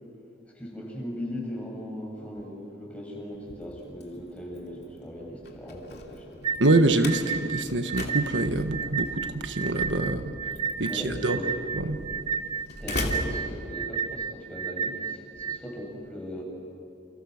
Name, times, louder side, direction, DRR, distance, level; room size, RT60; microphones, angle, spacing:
voice 1, 0.5-6.6 10.0-10.2 10.9-11.6 12.0-12.3 12.8-16.4, equal, 5° left, -2 dB, 7.3 m, -38 dB
Slam, 3.3-14.2, left 2 dB, 60° left, 2.7 m, -40 dB
sound 1, 6.4-15.6, right 7 dB, 25° right, 0.7 m, -32 dB
voice 2, 6.6-10.3 10.8-11.4 11.7-12.0, right 2 dB, 85° right, 7 dB, 1.5 m, -25 dB
29.5 x 29.0 x 6.6 m, 2.5 s
head